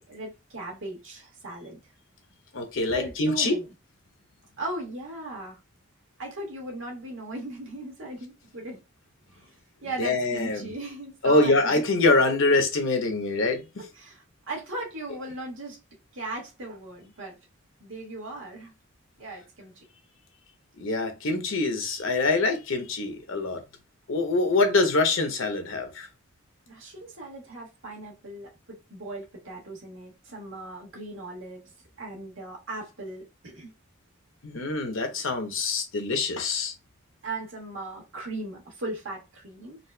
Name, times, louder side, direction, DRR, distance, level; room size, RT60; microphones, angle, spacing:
voice 1, 0.1-1.8 2.9-3.7 4.6-5.6 6.2-8.8 9.3-9.5 9.8-11.8 14.0-15.8 16.1-17.4 17.8-18.7 19.2-19.8 26.7-31.6 32.0-33.7 37.2-39.8, right 2 dB, 70° right, 1.6 m, -38 dB
voice 2, 2.5-3.6 10.0-10.7 11.2-13.8 20.8-23.6 24.1-26.1 34.4-36.7, left 3 dB, 70° left, 0.9 m, -24 dB
4.1 x 2.4 x 2.2 m
head